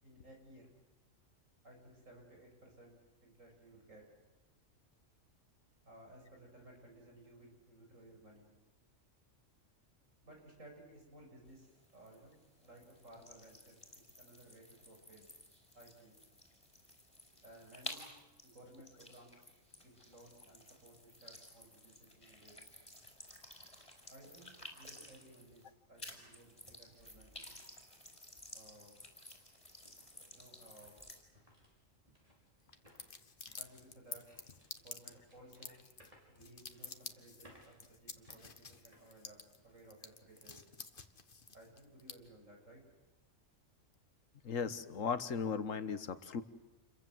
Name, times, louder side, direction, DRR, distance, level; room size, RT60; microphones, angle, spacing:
voice 1, 0.0-0.7 1.6-3.0 3.2-4.0 5.8-8.5 10.2-15.3 15.8-16.2 17.4-18.1 18.4-19.5 19.8-22.6 24.1-27.6 28.5-29.0 30.3-31.0 33.6-34.2 34.8-35.8 36.3-40.6 41.5-42.8, right 1 dB, 80° right, 1 dB, 7.2 m, -58 dB
sound 1, 11.5-25.7 26.0-31.2, left 1 dB, 25° left, 5.4 m, -54 dB
sound 2, 28.4-28.5 29.0-39.9 40.3-40.5 41.1-41.4, equal, 25° right, 6.3 m, -67 dB
sound 3, 32.7-42.1, left 4 dB, 45° left, 1.6 m, -49 dB
voice 2, 44.4-46.4, left 6 dB, 85° left, 12 dB, 1.6 m, -37 dB
29.0 x 23.0 x 7.8 m, 1.1 s
omnidirectional pair, 1.3 m